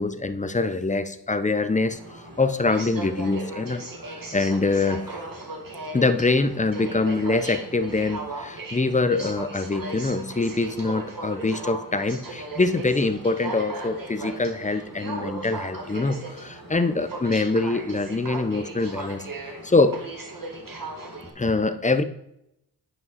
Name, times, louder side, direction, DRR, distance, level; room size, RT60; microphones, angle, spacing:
voice 1, 0.0-5.1 5.9-19.3 19.6-20.0 21.4-22.0, left 3 dB, 15° left, 11 dB, 0.7 m, -24 dB
Aircraft, 1.9-21.3, right 2 dB, 50° right, 2.1 m, -37 dB
9.6 x 5.3 x 4.2 m, 0.80 s
cardioid pair, 45°, 44 cm